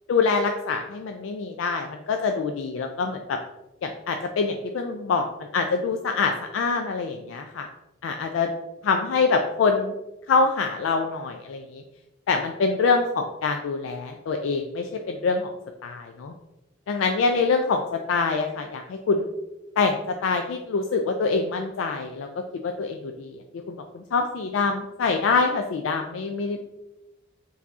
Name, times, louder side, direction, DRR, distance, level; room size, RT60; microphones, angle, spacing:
voice 1, 0.1-3.4 3.8-7.7 8.0-8.5 8.8-9.9 10.3-11.8 12.3-15.5 15.8-16.3 16.9-19.3 19.8-22.3 22.6-26.6, left 4 dB, 85° left, 4 dB, 0.3 m, -25 dB
4.7 x 2.7 x 3.5 m, 0.98 s
head